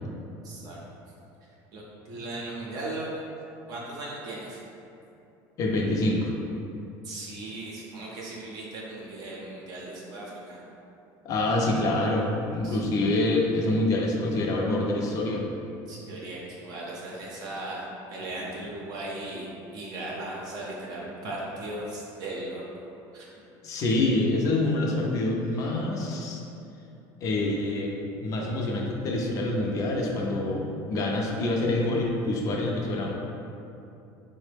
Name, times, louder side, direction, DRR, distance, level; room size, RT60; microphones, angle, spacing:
voice 1, 0.4-0.8 1.7-3.2 3.7-4.6 7.0-10.6 12.6-12.8 15.9-19.5 19.7-22.6 23.1-23.3 25.6-25.7, right 2 dB, 50° right, -4 dB, 0.6 m, -37 dB
voice 2, 5.6-6.3 11.2-15.5 23.6-26.4 27.2-27.9 28.2-33.1, left 2 dB, 45° left, -1 dB, 0.5 m, -26 dB
3.8 x 2.1 x 3.3 m, 2.7 s
cardioid pair, 135°, 8 cm